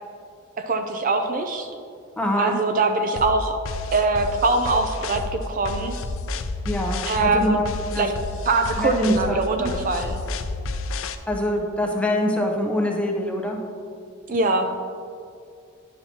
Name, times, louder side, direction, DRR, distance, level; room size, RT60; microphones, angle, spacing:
voice 1, 0.7-1.7 2.4-3.6 3.9-5.9 7.1-7.6 8.0-8.1 8.5-10.2 14.3-14.7, right 3 dB, 40° right, 6 dB, 0.4 m, -22 dB
voice 2, 2.2-2.5 6.6-8.1 8.8-9.7 11.3-13.6, left 1 dB, 5° left, 1 dB, 0.7 m, -24 dB
sound 1, 3.2-11.2, left 3 dB, 85° left, 0.4 m, -31 dB
10.5 x 5.8 x 2.8 m, 2.4 s
head